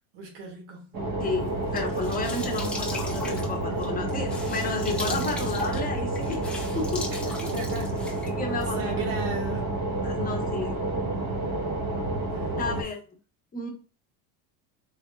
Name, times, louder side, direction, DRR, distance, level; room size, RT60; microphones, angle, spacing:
voice 1, 0.1-0.9 5.0-5.7 7.3-8.1 8.7-9.8 12.3-12.8, right 3 dB, 80° right, 1.8 m, -37 dB
sound 1, 0.9-12.8, right 2 dB, 50° right, 1.2 m, -29 dB
voice 2, 1.2-6.4 6.7-7.1 8.3-9.0 10.0-10.8 12.5-13.0 13.5-13.7, left 3 dB, 20° left, 0.8 m, -32 dB
sound 2, 1.5-8.7, left 2 dB, 5° left, 0.4 m, -39 dB
3.8 x 3.5 x 2.2 m
cardioid pair, 140°, 46 cm